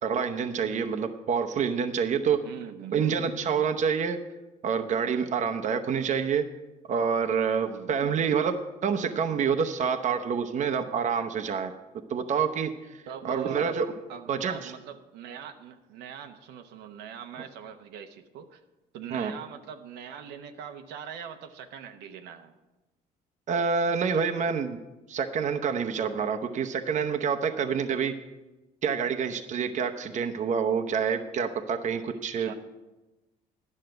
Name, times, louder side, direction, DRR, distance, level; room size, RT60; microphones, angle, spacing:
voice 1, 0.0-2.4 2.9-4.2 4.6-6.5 6.9-11.7 12.1-13.9 14.3-14.7 19.1-19.3 23.5-24.8 25.1-28.1 28.8-32.5, right 6 dB, 45° right, 6 dB, 0.8 m, -27 dB
voice 2, 2.4-3.4 7.6-8.0 13.1-13.8 14.1-18.6 18.9-22.5 32.4-32.5, right 8 dB, 85° right, 6 dB, 0.9 m, -42 dB
11.0 x 6.5 x 7.8 m, 1.1 s
cardioid pair, 110°, 17 cm